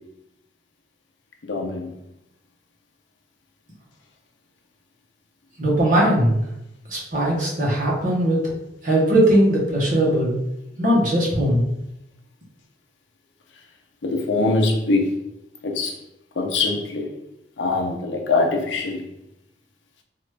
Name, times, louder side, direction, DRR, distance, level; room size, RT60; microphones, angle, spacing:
voice 1, 1.4-1.9 14.0-15.1 15.6-15.9 16.4-17.1 17.6-19.1, left 3 dB, 85° left, 3 dB, 0.6 m, -23 dB
voice 2, 5.6-6.4 6.9-8.4 8.8-10.3 10.8-11.6, right 1 dB, 45° right, -3 dB, 0.9 m, -19 dB
2.9 x 2.4 x 3.2 m, 0.85 s
head